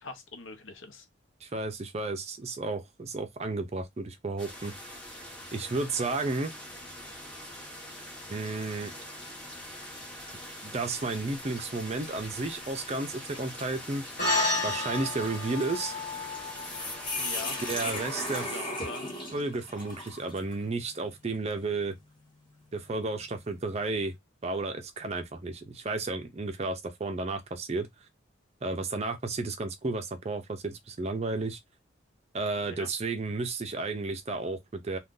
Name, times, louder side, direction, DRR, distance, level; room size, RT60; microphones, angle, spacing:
voice 1, 0.0-1.1 17.2-18.1 18.4-19.1 32.6-32.9, left 3 dB, 75° left, 0.7 m, -43 dB
voice 2, 1.4-5.0 5.5-6.5 8.3-8.9 10.6-14.1 14.6-16.0 17.6-18.6 19.3-22.0 22.7-24.1 24.4-27.9 28.6-31.6 32.3-35.0, right 3 dB, 30° right, 0.5 m, -32 dB
sound 1, 4.4-18.5, equal, 5° left, 0.9 m, -44 dB
sound 2, 5.7-6.2 6.7-6.8 7.8-8.0 8.6-20.6, left 2 dB, 25° left, 1.2 m, -40 dB
sound 3, 14.2-18.8, left 2 dB, 45° left, 1.2 m, -32 dB
2.5 x 2.3 x 3.6 m
head